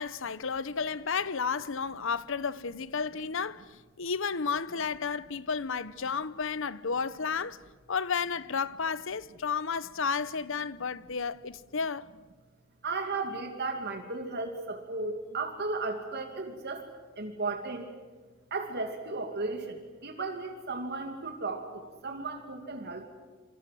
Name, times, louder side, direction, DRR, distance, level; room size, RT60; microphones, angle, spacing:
voice 1, 0.0-7.6 7.9-12.1, left 5 dB, 65° left, 0.8 m, -32 dB
voice 2, 12.8-16.8 17.2-17.9 18.5-23.0, right 3 dB, 55° right, 2.5 m, -35 dB
27.0 x 25.5 x 7.7 m
head